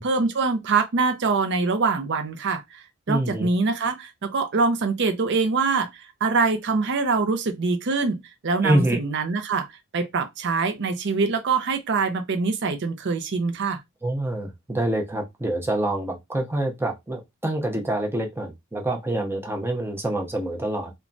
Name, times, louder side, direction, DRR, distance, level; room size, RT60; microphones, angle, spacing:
voice 1, 0.0-8.2 8.4-9.7 9.9-13.8, right 4 dB, 55° right, 0.5 m, -24 dB
voice 2, 3.1-3.5 8.6-9.0 14.0-20.9, right 1 dB, 10° right, 0.5 m, -26 dB
3.0 x 2.2 x 2.5 m
head